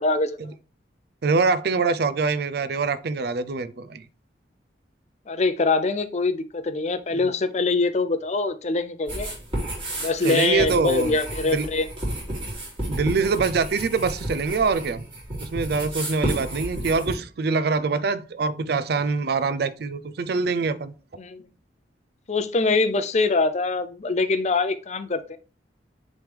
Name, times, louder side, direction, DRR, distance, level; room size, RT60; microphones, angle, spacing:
voice 1, 0.0-0.4 5.3-9.3 10.0-11.9 21.2-21.4 22.3-25.4, left 3 dB, 40° left, 0.5 m, -24 dB
voice 2, 1.2-4.1 7.1-7.3 10.2-11.2 11.5-11.7 12.9-15.0 15.3-20.9, right 4 dB, 60° right, 0.5 m, -24 dB
sound 1, 9.1-17.2, right 1 dB, 30° right, 2.7 m, -32 dB
9.4 x 3.2 x 3.4 m
head